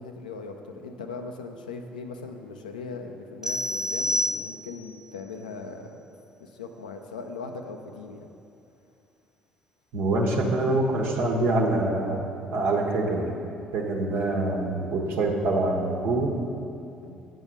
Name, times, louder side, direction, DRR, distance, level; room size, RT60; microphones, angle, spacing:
voice 1, 0.0-6.0 6.4-8.3 17.0-17.2, left 4 dB, 80° left, 4 dB, 0.6 m, -39 dB
sound 1, 3.4-5.0, equal, 10° right, 0.6 m, -28 dB
voice 2, 9.9-12.2 12.5-13.3 13.7-16.3, right 2 dB, 60° right, 0 dB, 1.2 m, -25 dB
7.9 x 5.5 x 7.1 m, 2.6 s
figure-of-eight pair, 50°, 4 cm